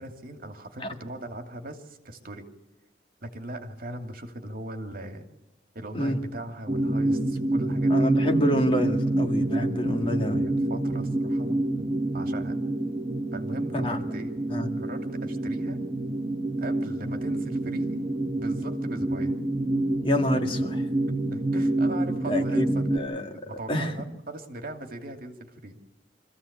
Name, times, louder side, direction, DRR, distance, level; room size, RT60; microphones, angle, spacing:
voice 1, 0.0-2.5 3.2-5.3 5.7-8.1 10.0-10.2 10.7-11.9 12.1-12.5 13.3-14.3 14.8-15.8 16.6-18.0 18.4-19.3 21.3-22.9 23.3-25.8, right 1 dB, 55° right, 5 dB, 2.6 m, -39 dB
sound 1, 6.7-23.0, right 1 dB, 30° right, 1.5 m, -27 dB
voice 2, 7.9-10.5 13.7-14.0 14.5-14.7 20.0-20.8 22.3-23.4 23.7-24.0, equal, 30° left, 4 dB, 2.1 m, -27 dB
25.0 x 15.0 x 8.7 m, 0.97 s
head